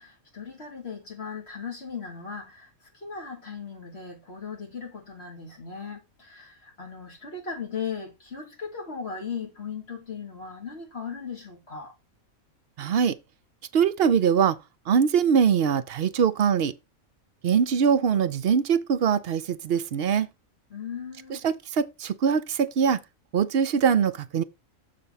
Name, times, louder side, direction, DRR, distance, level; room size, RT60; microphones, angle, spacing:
voice 1, 0.0-11.9 20.7-21.5, left 6 dB, 50° left, 3.4 m, -37 dB
voice 2, 12.8-13.2 13.7-14.6 14.9-16.7 17.4-20.3 21.4-23.0 23.3-24.4, right 7 dB, 60° right, 0.7 m, -22 dB
6.8 x 4.5 x 5.6 m
omnidirectional pair, 1.4 m